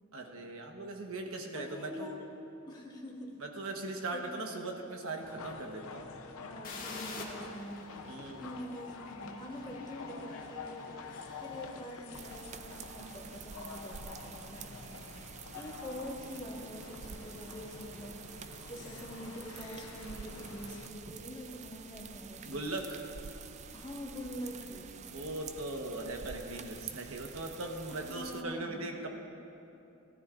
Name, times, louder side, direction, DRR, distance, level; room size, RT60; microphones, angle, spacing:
voice 1, 0.1-2.1 3.4-6.1 8.1-8.5 22.4-23.1 25.1-29.1, right 2 dB, 70° right, 2 dB, 1.2 m, -39 dB
voice 2, 1.5-2.3 2.7-3.4 3.9-4.2 4.5-4.8 6.4-7.8 8.3-11.0 11.4-18.1 18.7-22.6 23.7-24.9 27.9-29.1, equal, 20° left, -3 dB, 1.5 m, -45 dB
sound 1, 5.2-20.9, left 4 dB, 75° left, 0.7 m, -48 dB
sound 2, 6.6-12.3, left 3 dB, 40° left, 1.6 m, -49 dB
sound 3, 12.1-28.4, right 6 dB, 35° right, 0.4 m, -48 dB
17.5 x 13.0 x 2.5 m, 2.8 s
head